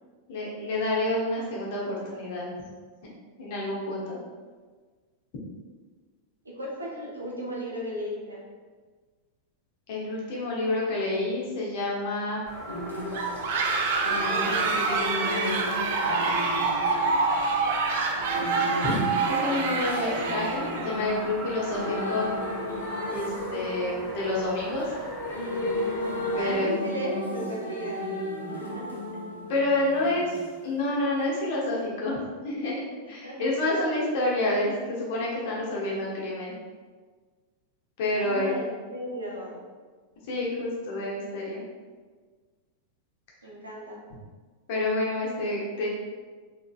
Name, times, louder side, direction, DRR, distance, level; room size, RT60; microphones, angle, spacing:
voice 1, 0.3-2.6 3.4-4.2 9.9-12.4 14.1-14.3 14.7-15.6 18.8-22.3 23.1-24.8 26.3-26.7 29.5-30.4 30.6-32.8 33.1-36.5 38.0-38.5 40.2-41.6 44.7-45.9, left 2 dB, 50° left, -4 dB, 1.0 m, -29 dB
voice 2, 6.4-8.4 26.4-28.0 28.5-28.9 33.2-33.4 38.2-39.6 43.4-44.0, equal, 80° right, -3 dB, 0.7 m, -35 dB
sound 1, 12.5-26.6, equal, 5° left, 0.9 m, -39 dB
sound 2, 12.7-30.5 31.7-31.9, left 1 dB, 80° left, 0.6 m, -34 dB
sound 3, 13.1-21.0, right 4 dB, 55° right, 0.4 m, -27 dB
3.7 x 3.0 x 2.4 m, 1.5 s
figure-of-eight pair, 90°, 0 cm